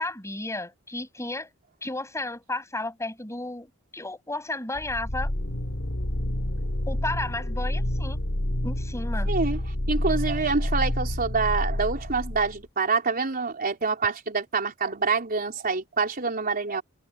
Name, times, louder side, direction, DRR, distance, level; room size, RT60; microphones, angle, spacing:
voice 1, 0.0-1.5 1.8-5.3 6.9-8.2 8.6-9.3, left 2 dB, 15° left, 7.2 m, -33 dB
sound 1, 4.8-12.6, left 1 dB, 60° left, 2.2 m, -28 dB
voice 2, 9.3-9.6 9.9-16.8, right 4 dB, 45° right, 4.0 m, -26 dB
open air
head